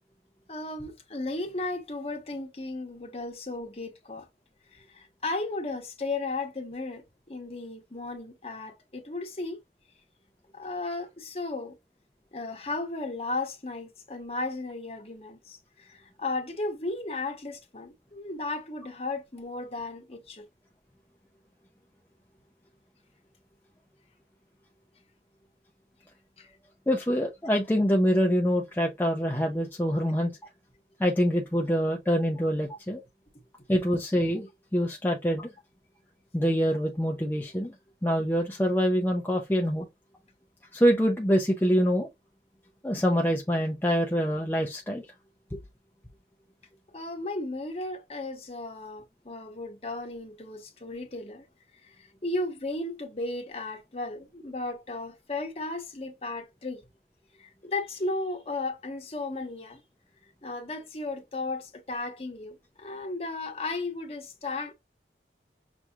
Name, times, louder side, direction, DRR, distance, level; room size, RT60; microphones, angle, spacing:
voice 1, 0.5-4.3 4.7-7.0 7.3-9.6 10.5-11.7 12.3-20.5 26.4-26.5 46.9-51.5 51.8-56.8 57.4-59.8 60.4-64.7, left 2 dB, 35° left, 1.0 m, -35 dB
voice 2, 26.9-30.4 31.0-33.0 33.7-35.5 36.3-37.7 38.0-39.8 40.7-42.1 42.8-45.0 45.5-45.6, equal, 10° left, 0.5 m, -25 dB
6.0 x 2.8 x 2.3 m
head